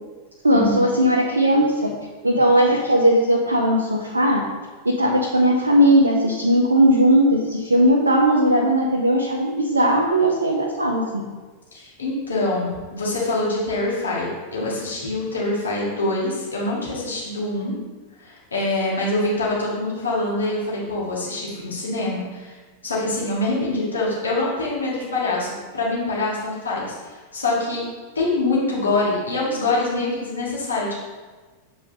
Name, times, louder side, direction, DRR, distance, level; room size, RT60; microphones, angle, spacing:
voice 1, 0.4-1.9 2.2-4.4 4.8-11.0, equal, 80° right, -1 dB, 0.6 m, -18 dB
voice 2, 11.7-17.7 18.2-22.6 22.8-27.8 28.2-30.9, left 2 dB, 75° left, -5 dB, 1.8 m, -25 dB
7.6 x 4.7 x 2.7 m, 1.3 s
figure-of-eight pair, 90°, 0 cm